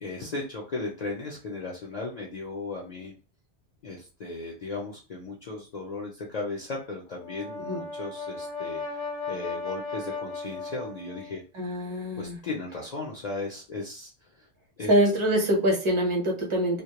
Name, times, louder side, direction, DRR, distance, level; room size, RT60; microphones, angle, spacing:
voice 1, 0.0-3.1 3.8-9.0 9.3-11.4 12.2-14.1 14.8-14.9, left 3 dB, 50° left, -2 dB, 0.5 m, -36 dB
Brass instrument, 7.1-11.3, left 3 dB, 70° left, 0.9 m, -36 dB
voice 2, 11.5-12.4 14.8-16.8, equal, 30° right, 0 dB, 0.7 m, -24 dB
2.2 x 2.0 x 2.8 m, 0.35 s
omnidirectional pair, 1.1 m